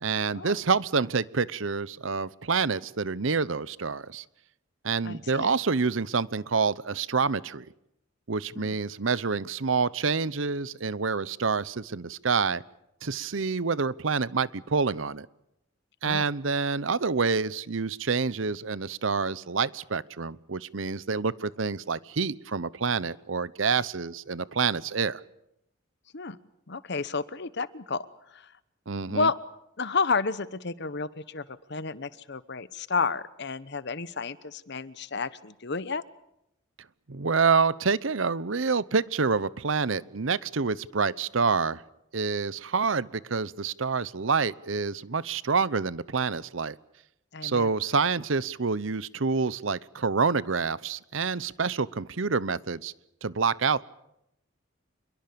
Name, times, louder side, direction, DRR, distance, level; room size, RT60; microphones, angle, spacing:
voice 1, 0.0-4.2 4.8-7.7 8.3-12.6 13.0-15.3 16.0-25.2 28.9-29.3 37.1-41.8 42.1-46.8 47.4-52.9 53.2-53.8, right 5 dB, 75° right, 19 dB, 0.8 m, -27 dB
voice 2, 5.0-5.5 8.6-8.7 16.0-16.3 26.1-26.4 26.7-28.5 29.1-29.4 29.8-36.0 47.3-47.7, left 4 dB, 60° left, 16 dB, 1.1 m, -31 dB
27.0 x 22.5 x 7.0 m, 0.81 s
head